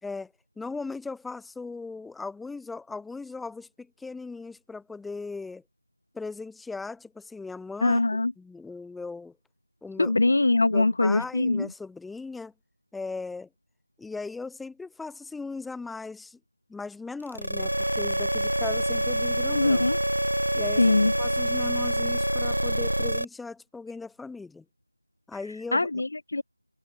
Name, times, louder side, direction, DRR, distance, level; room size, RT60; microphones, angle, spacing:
voice 1, 0.0-5.6 6.1-9.3 9.8-10.2 10.7-12.5 12.9-13.5 14.0-16.4 16.7-19.9 20.5-24.6 25.3-25.9, left 4 dB, ahead, 5.6 m, -38 dB
voice 2, 7.8-8.3 10.0-11.7 19.5-20.0 20.8-21.1 25.7-26.4, left 2 dB, 45° left, 0.7 m, -22 dB
sound 1, 17.3-23.2, right 1 dB, 75° right, 2.5 m, -26 dB
figure-of-eight pair, 170°, 0 cm